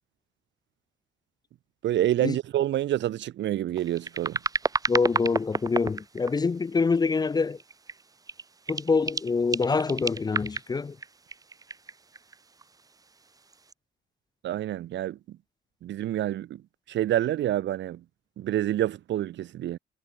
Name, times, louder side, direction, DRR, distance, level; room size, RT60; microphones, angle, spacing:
voice 1, 1.8-4.4 14.4-15.4 15.8-16.6 16.9-18.0 18.4-19.8, right 12 dB, 70° right, 1.5 m, -27 dB
sound 1, 3.8-6.7 7.2-8.0 8.3-12.8 13.5-13.7, right 4 dB, 20° right, 1.3 m, -32 dB
voice 2, 4.9-7.6 8.7-11.0, left 4 dB, 20° left, 0.9 m, -25 dB
cardioid pair, 170°, 19 cm